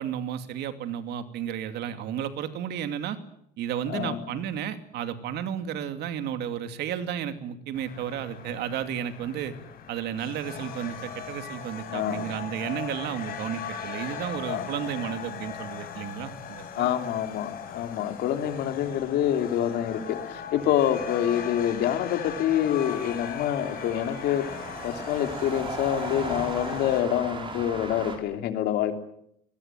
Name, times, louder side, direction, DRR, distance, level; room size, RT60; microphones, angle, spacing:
voice 1, 0.0-3.2 3.6-9.5 9.9-16.9, right 9 dB, 75° right, 9 dB, 2.6 m, -33 dB
voice 2, 3.9-4.2 11.9-12.3 14.5-14.6 15.0-15.1 16.7-24.4 24.8-28.9, left 10 dB, 80° left, 7 dB, 3.3 m, -26 dB
sound 1, 7.7-27.0, left 7 dB, 60° left, 5.9 m, -39 dB
sound 2, 23.0-28.2, right 3 dB, 30° right, 6.1 m, -37 dB
22.5 x 20.0 x 9.1 m, 0.73 s
cardioid pair, 110°, 17 cm